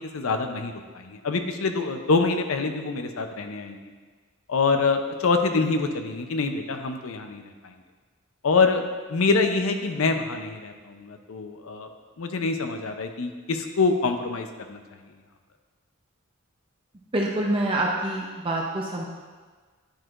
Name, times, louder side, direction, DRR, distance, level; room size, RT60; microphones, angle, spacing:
voice 1, 0.1-3.8 4.5-7.7 8.4-8.8 9.1-11.9 12.2-14.8, left 4 dB, 75° left, 6 dB, 0.6 m, -25 dB
voice 2, 17.1-19.1, right 1 dB, 25° right, -2 dB, 0.5 m, -26 dB
10.0 x 4.5 x 2.5 m, 1.5 s
head